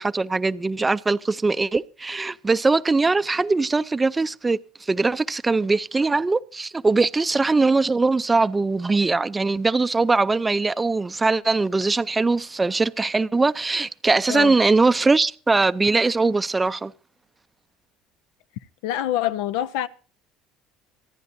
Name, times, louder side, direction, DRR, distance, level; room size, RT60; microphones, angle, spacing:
voice 1, 0.0-4.6 4.9-16.9, right 3 dB, 15° right, 0.5 m, -21 dB
voice 2, 18.8-19.9, left 12 dB, 85° left, 0.8 m, -25 dB
25.5 x 9.8 x 2.7 m
supercardioid pair, 110°, 0 cm